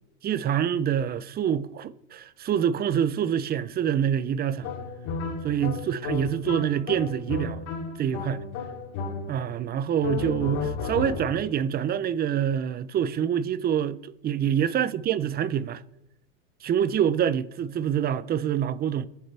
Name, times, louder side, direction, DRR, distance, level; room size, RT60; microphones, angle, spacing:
voice 1, 0.2-4.7 5.4-7.7 8.0-8.4 9.3-15.8 16.6-19.1, right 9 dB, 25° right, 0.7 m, -26 dB
sound 1, 4.6-9.6 10.0-11.5, left 5 dB, 65° left, 3.1 m, -33 dB
24.5 x 10.0 x 3.4 m
supercardioid pair, 120°, 39 cm